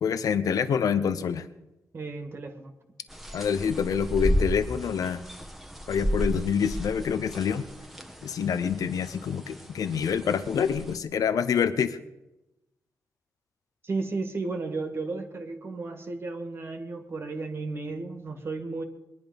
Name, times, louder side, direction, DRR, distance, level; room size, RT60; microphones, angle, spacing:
voice 1, 0.0-1.5 3.3-5.2 5.9-7.7 8.2-12.0, left 7 dB, 80° left, 12 dB, 0.8 m, -26 dB
voice 2, 1.9-2.7 13.8-18.8, right 3 dB, 45° right, 5 dB, 1.9 m, -33 dB
sound 1, 3.1-11.0, equal, 5° right, 1.2 m, -33 dB
22.5 x 10.5 x 5.3 m, 0.96 s
wide cardioid pair, 120°, 6 cm